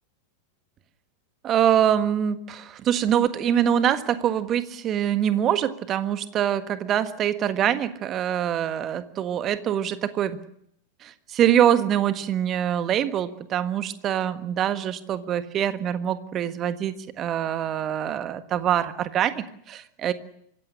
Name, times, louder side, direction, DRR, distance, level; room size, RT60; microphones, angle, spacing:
voice 1, 1.4-10.4 11.0-20.1, right 10 dB, 30° right, 12 dB, 1.6 m, -24 dB
25.0 x 15.5 x 10.0 m, 0.72 s
figure-of-eight pair, 90°, 0 cm